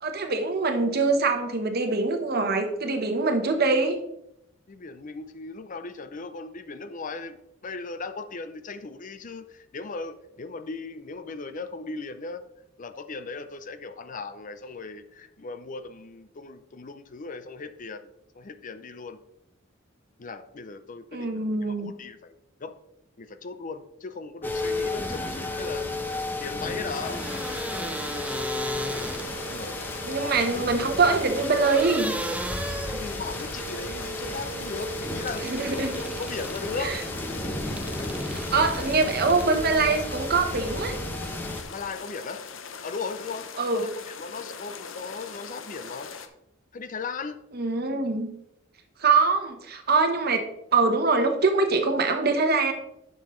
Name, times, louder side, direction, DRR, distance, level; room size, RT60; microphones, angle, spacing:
voice 1, 0.0-4.0 21.1-21.9 30.0-32.1 35.4-35.9 36.8-37.0 38.3-40.9 43.6-43.9 47.5-48.3 49.0-52.7, right 4 dB, 50° right, 6 dB, 1.0 m, -24 dB
voice 2, 4.7-12.4 12.8-18.1 18.3-19.2 20.2-21.5 21.8-22.8 23.2-26.0 26.4-27.3 29.5-29.8 30.6-30.7 32.9-37.0 41.7-42.4 42.8-46.1 46.7-47.4, left 4 dB, 40° left, 10 dB, 0.5 m, -37 dB
sound 1, 24.4-41.6, left 1 dB, 10° left, 0.8 m, -33 dB
sound 2, 26.6-29.6 31.6-33.5 35.3-36.7 37.8-39.7, right 1 dB, 5° right, 0.3 m, -37 dB
sound 3, 26.9-46.3, left 5 dB, 75° left, 0.8 m, -41 dB
10.5 x 6.5 x 3.1 m, 0.81 s
head